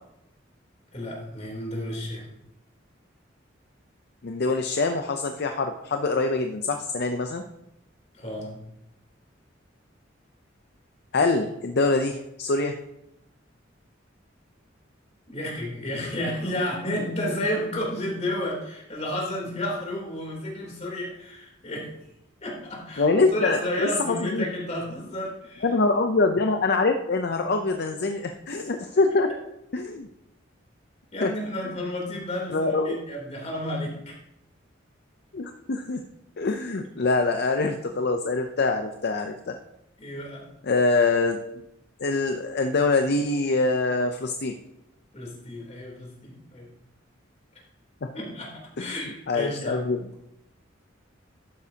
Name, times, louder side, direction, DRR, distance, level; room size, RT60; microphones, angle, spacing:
voice 1, 0.9-2.3 8.1-8.5 15.3-21.9 22.4-25.7 31.1-34.1 40.0-40.4 45.1-46.7 48.1-48.5 48.8-49.9, left 1 dB, 35° left, -2 dB, 3.3 m, -31 dB
voice 2, 4.2-7.4 11.1-12.7 23.0-24.5 25.6-29.3 29.7-30.1 31.2-31.3 32.5-33.0 35.3-36.0 36.4-39.6 40.6-41.4 42.0-44.5 48.0-48.1 48.8-49.0 49.3-50.0, left 3 dB, 55° left, 6 dB, 0.6 m, -24 dB
12.0 x 9.3 x 2.9 m, 0.86 s
head